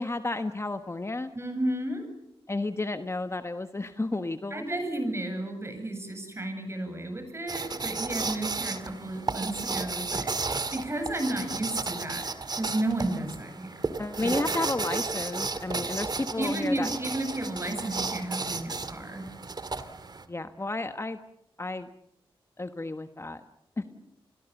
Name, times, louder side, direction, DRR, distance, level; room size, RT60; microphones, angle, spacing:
voice 1, 0.0-1.3 2.5-4.6 14.0-16.9 20.3-21.2 21.6-21.9 22.6-23.4 23.8-23.9, left 2 dB, 30° left, 9 dB, 1.2 m, -32 dB
voice 2, 1.3-2.1 4.5-13.8 14.2-14.3 16.4-19.3, right 1 dB, 25° right, 7 dB, 7.9 m, -32 dB
sound 1, 7.5-20.3, right 3 dB, 45° right, 2.1 m, -33 dB
29.5 x 22.0 x 7.2 m, 0.77 s
cardioid pair, 70°, 10 cm